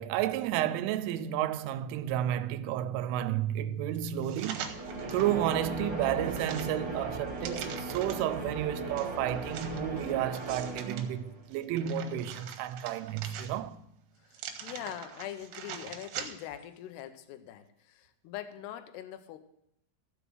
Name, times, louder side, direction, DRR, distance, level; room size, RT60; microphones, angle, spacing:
voice 1, 0.0-4.8 5.1-13.8, right 11 dB, 90° right, 3.2 m, -31 dB
sound 1, 4.2-5.3 5.8-8.4 9.0-11.1 11.5-13.8 14.3-16.6 17.0-17.1, right 8 dB, 75° right, 2.7 m, -43 dB
sound 2, 4.5-11.4, right 2 dB, 45° right, 1.3 m, -38 dB
voice 2, 14.2-19.4, left 11 dB, 80° left, 2.5 m, -43 dB
15.0 x 5.1 x 6.2 m
omnidirectional pair, 5.5 m